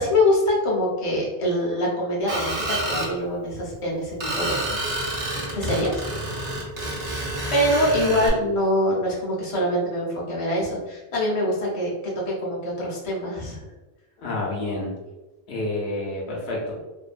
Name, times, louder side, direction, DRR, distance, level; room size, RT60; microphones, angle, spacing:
voice 1, 0.0-4.8 5.1-6.0 7.1-13.6, left 1 dB, 35° left, -4 dB, 0.6 m, -24 dB
Screech, 2.3-3.1 4.2-8.3, right 1 dB, 45° right, 0.7 m, -28 dB
voice 2, 14.2-14.9 15.5-16.8, left 2 dB, 70° left, -3 dB, 0.8 m, -28 dB
2.6 x 2.2 x 2.4 m, 1.1 s
omnidirectional pair, 1.1 m